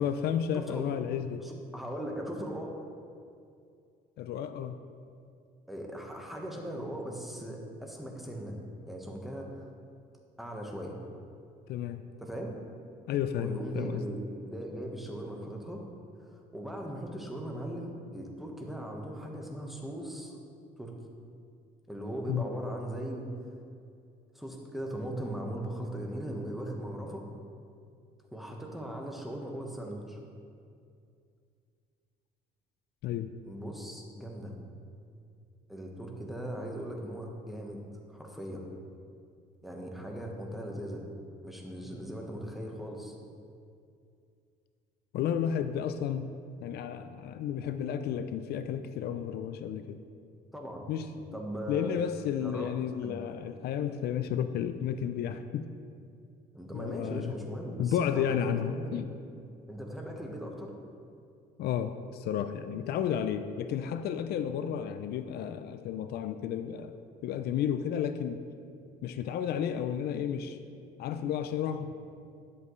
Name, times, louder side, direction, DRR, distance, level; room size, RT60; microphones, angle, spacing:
voice 1, 0.0-1.5 4.2-4.8 11.7-12.0 13.1-14.0 22.3-22.4 33.0-33.3 45.1-46.3 46.6-50.0 50.9-51.4 51.7-55.7 56.7-57.3 57.8-59.1 61.6-66.9 67.2-68.4 69.0-70.6 71.0-71.9, left 9 dB, 70° left, 10 dB, 0.4 m, -32 dB
voice 2, 1.4-2.8 5.7-8.6 8.9-9.7 10.4-11.0 12.2-12.5 13.4-15.8 16.1-20.4 20.8-20.9 21.9-23.5 24.3-27.2 28.3-30.2 33.4-34.6 35.7-37.8 38.1-38.7 39.6-41.0 41.4-43.1 50.5-50.9 51.3-51.9 52.4-52.7 53.0-53.1 56.5-59.0 59.7-60.7 66.9-67.0, right 1 dB, ahead, 0 dB, 1.2 m, -39 dB
10.5 x 7.4 x 3.2 m, 2.4 s
cardioid pair, 110°, 17 cm